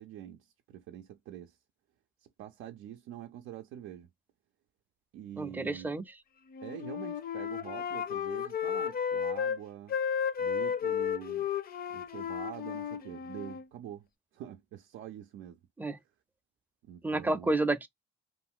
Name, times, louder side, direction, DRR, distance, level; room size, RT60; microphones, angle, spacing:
voice 1, 0.0-1.6 2.2-4.1 5.1-5.9 6.6-10.0 10.4-11.5 11.9-14.1 14.3-15.6 16.8-17.6, right 11 dB, 90° right, 0.4 m, -45 dB
voice 2, 5.4-6.0 15.8-16.0 17.0-17.9, right 2 dB, 10° right, 0.4 m, -30 dB
Wind instrument woodwind instrument, 6.5-9.6 9.9-13.7, left 8 dB, 50° left, 0.6 m, -33 dB
2.5 x 2.3 x 3.5 m
cardioid pair, 90°, 20 cm